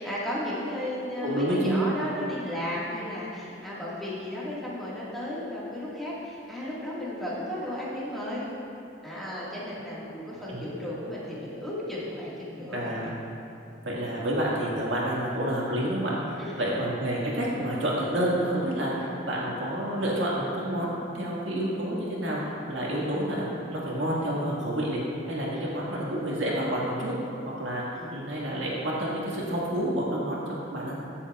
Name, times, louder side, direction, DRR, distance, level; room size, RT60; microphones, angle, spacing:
voice 1, 0.0-8.5 9.0-13.1 16.4-16.7 25.5-25.7 27.9-28.1, left 1 dB, ahead, -8 dB, 1.8 m, -34 dB
voice 2, 1.2-1.8 10.5-10.6 12.7-13.1 13.8-25.0 25.3-27.1 27.6-30.9, right 1 dB, 85° right, -5 dB, 1.9 m, -29 dB
15.0 x 7.0 x 2.4 m, 2.6 s
head